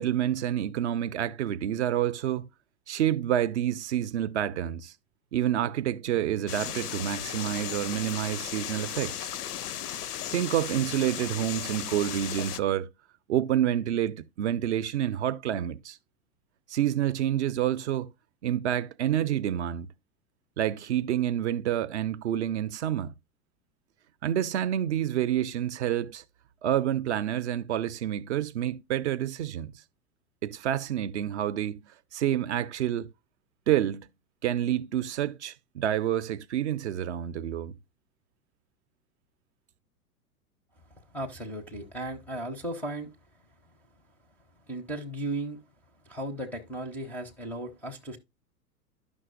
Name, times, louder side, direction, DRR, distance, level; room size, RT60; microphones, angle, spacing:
voice 1, 0.0-2.5 2.9-4.9 5.3-9.3 10.3-12.9 13.3-16.0 16.7-18.1 18.4-19.9 20.6-23.1 24.2-26.2 26.6-29.7 30.4-31.8 32.1-33.1 33.7-34.1 34.4-37.8, right 11 dB, 45° right, 0.5 m, -28 dB
sound 1, 6.5-12.6, left 10 dB, 70° left, 0.6 m, -36 dB
voice 2, 41.1-43.1 44.7-45.6 46.1-48.2, right 1 dB, 5° left, 0.5 m, -35 dB
11.0 x 6.0 x 2.4 m
figure-of-eight pair, 95°, 48 cm